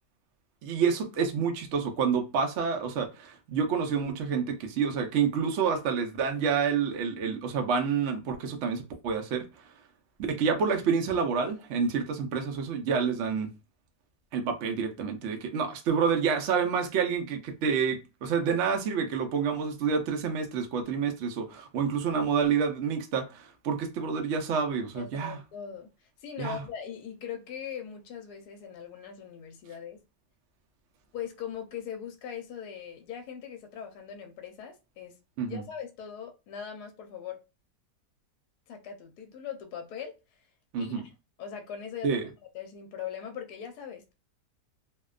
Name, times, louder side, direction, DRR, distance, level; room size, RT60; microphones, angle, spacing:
voice 1, 0.6-9.4 10.3-13.5 14.3-25.4 26.4-26.6 35.4-35.6 40.7-41.0 42.0-42.2, right 6 dB, 75° right, 0.6 m, -28 dB
voice 2, 24.9-25.9 26.2-30.0 31.1-35.1 35.5-37.4 38.7-40.1 40.8-41.1 41.4-42.1 42.5-44.1, left 8 dB, 75° left, 1.1 m, -40 dB
2.7 x 2.1 x 2.3 m
omnidirectional pair, 1.8 m